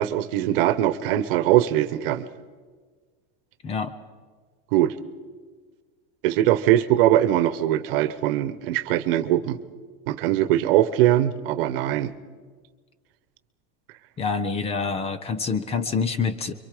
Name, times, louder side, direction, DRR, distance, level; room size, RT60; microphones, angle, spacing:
voice 1, 0.0-2.3 4.7-4.9 6.2-9.6 10.1-12.1, right 13 dB, 70° right, 14 dB, 1.1 m, -21 dB
voice 2, 14.2-16.5, left 5 dB, 20° left, 14 dB, 0.8 m, -26 dB
26.0 x 24.0 x 5.0 m, 1.5 s
supercardioid pair, 155°, 29 cm